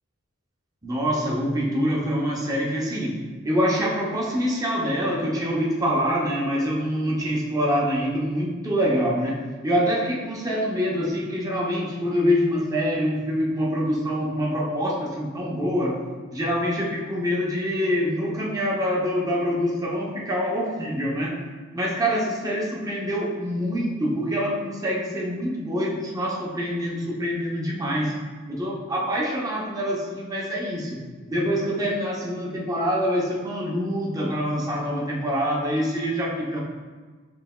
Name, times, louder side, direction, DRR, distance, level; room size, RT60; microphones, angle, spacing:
voice 1, 0.8-16.0 16.3-21.4 21.7-28.2 28.5-31.0 31.3-36.6, equal, 15° right, -3 dB, 0.7 m, -25 dB
5.6 x 3.3 x 2.2 m, 1.4 s
head